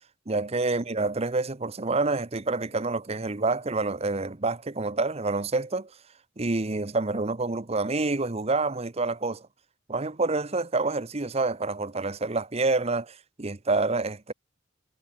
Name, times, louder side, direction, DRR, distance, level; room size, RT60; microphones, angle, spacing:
voice 1, 0.3-5.9 6.4-9.4 9.9-14.3, right 3 dB, 30° right, 0.9 m, -27 dB
head